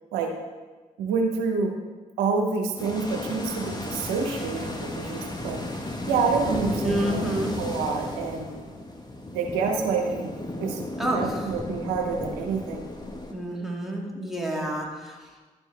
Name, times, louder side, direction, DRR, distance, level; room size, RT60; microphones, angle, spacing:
voice 1, 1.0-1.8 2.2-5.6 6.1-7.3 7.6-8.5 9.3-10.3 10.6-12.9, right 4 dB, 90° right, 2 dB, 0.8 m, -27 dB
sound 1, 2.8-13.3, left 1 dB, 25° left, 1.2 m, -34 dB
voice 2, 6.8-7.5 11.0-11.5 13.3-15.5, right 1 dB, ahead, -2 dB, 2.1 m, -29 dB
11.0 x 4.5 x 3.3 m, 1.3 s
hypercardioid pair, 40°, 16 cm